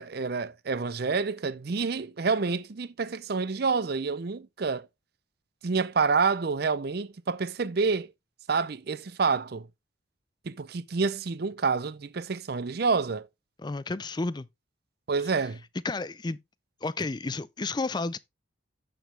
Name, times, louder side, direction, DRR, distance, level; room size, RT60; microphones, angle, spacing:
voice 1, 0.0-4.9 5.6-8.1 8.5-9.7 10.4-13.3 15.1-15.6, right 4 dB, 50° right, 0.5 m, -28 dB
voice 2, 13.6-14.5 15.8-16.4 16.8-18.2, left 3 dB, 20° left, 0.4 m, -31 dB
7.9 x 6.8 x 3.3 m
head